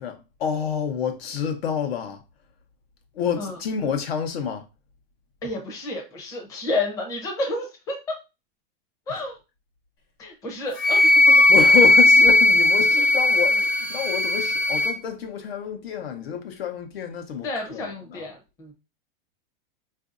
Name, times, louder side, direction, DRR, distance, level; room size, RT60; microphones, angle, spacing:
voice 1, 0.0-2.2 3.1-4.6 9.1-9.2 11.5-18.3, left 7 dB, 85° left, 0.9 m, -28 dB
voice 2, 5.4-8.2 9.1-9.4 10.2-11.3 17.4-18.7, left 2 dB, 10° left, 0.5 m, -30 dB
Wind instrument woodwind instrument, 10.8-14.9, left 2 dB, 40° left, 1.0 m, -17 dB
4.4 x 2.6 x 2.5 m
supercardioid pair, 165°, 30 cm